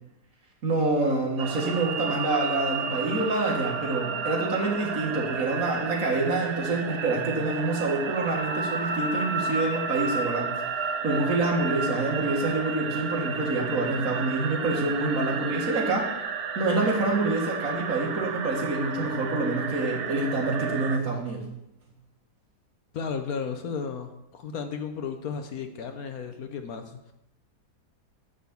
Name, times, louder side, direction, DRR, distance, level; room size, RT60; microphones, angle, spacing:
voice 1, 0.6-10.5 11.0-16.1 16.6-21.4, right 2 dB, 55° right, -1 dB, 2.2 m, -27 dB
sound 1, 1.4-21.0, right 5 dB, 70° right, 0.5 m, -32 dB
voice 2, 22.9-27.1, left 6 dB, 65° left, 7 dB, 1.1 m, -34 dB
9.6 x 4.0 x 7.0 m, 0.87 s
omnidirectional pair, 1.8 m